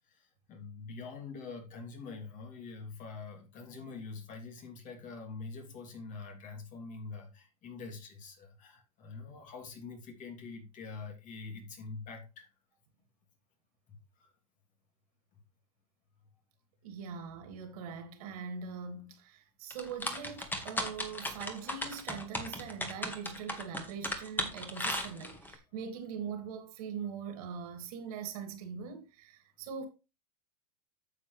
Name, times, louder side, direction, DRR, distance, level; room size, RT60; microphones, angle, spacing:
voice 1, 0.1-12.5 13.9-14.0, left 4 dB, 40° left, 3.1 m, -45 dB
voice 2, 16.8-29.9, right 6 dB, 65° right, 2.7 m, -42 dB
sound 1, 19.7-25.5, left 1 dB, 10° left, 2.0 m, -36 dB
9.5 x 7.1 x 3.4 m
hypercardioid pair, 105°, 20 cm